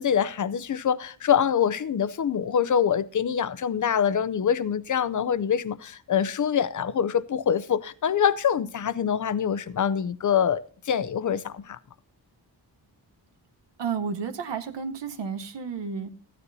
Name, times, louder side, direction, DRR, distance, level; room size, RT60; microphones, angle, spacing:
voice 1, 0.0-11.8, left 8 dB, 45° left, 0.5 m, -25 dB
voice 2, 13.8-16.1, right 6 dB, 75° right, 1.1 m, -31 dB
14.5 x 9.7 x 2.7 m
wide cardioid pair, 110°, 43 cm